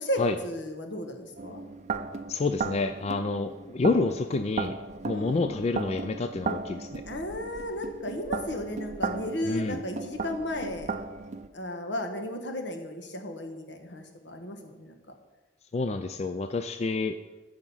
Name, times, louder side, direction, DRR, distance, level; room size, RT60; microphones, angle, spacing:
voice 1, 0.0-1.6 5.1-5.6 7.1-10.9 11.5-14.9, left 1 dB, 75° left, 5 dB, 1.3 m, -34 dB
sound 1, 1.4-11.5, right 4 dB, 40° right, 0.5 m, -36 dB
voice 2, 2.3-4.8 5.0-7.0 9.4-9.8 15.7-17.2, left 3 dB, 35° left, 9 dB, 0.4 m, -28 dB
14.0 x 5.1 x 5.6 m, 1.2 s
head